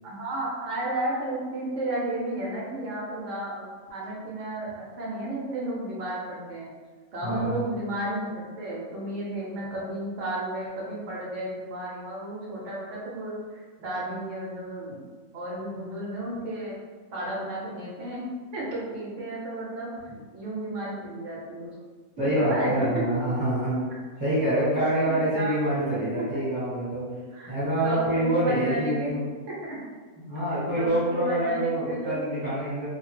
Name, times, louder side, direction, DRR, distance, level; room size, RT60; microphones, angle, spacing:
voice 1, 0.0-6.7 7.1-15.0 15.3-16.8 17.1-18.3 18.5-19.9 20.3-21.8 22.3-23.2 25.0-25.9 27.3-29.1 29.5-29.8 30.6-32.7, right 1 dB, 65° right, -5 dB, 1.0 m, -33 dB
voice 2, 7.2-7.6 22.2-23.8 24.2-27.0 27.5-29.2 30.2-32.9, right 1 dB, 15° right, -13 dB, 1.2 m, -26 dB
2.6 x 2.1 x 3.2 m, 1.5 s
omnidirectional pair, 1.4 m